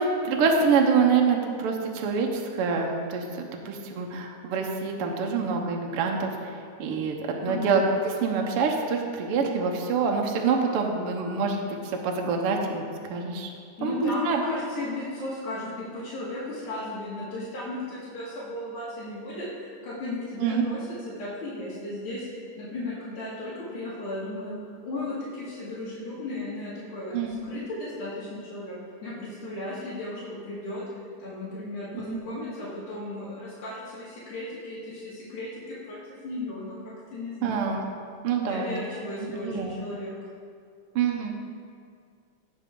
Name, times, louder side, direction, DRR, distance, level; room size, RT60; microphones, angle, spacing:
voice 1, 0.0-11.8 12.0-13.5 13.8-14.4 20.4-20.6 27.1-27.4 32.1-32.2 37.4-37.8 38.2-38.7 39.2-39.7 40.9-41.3, right 5 dB, 70° right, 1 dB, 1.4 m, -26 dB
voice 2, 7.5-7.8 13.8-22.3 22.5-24.6 24.8-27.1 27.4-28.8 29.0-30.8 31.2-36.0 36.2-37.8 38.4-40.2, left 2 dB, 75° left, -10 dB, 3.5 m, -35 dB
17.0 x 6.1 x 3.8 m, 2.2 s
omnidirectional pair, 3.5 m